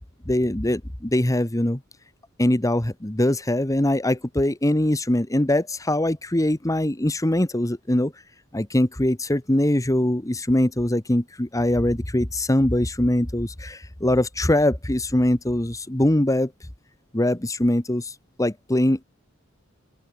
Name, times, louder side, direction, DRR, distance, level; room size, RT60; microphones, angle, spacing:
voice 1, 0.3-1.8 2.4-8.1 8.5-16.5 17.1-19.0, left 1 dB, 15° left, 1.2 m, -22 dB
open air
head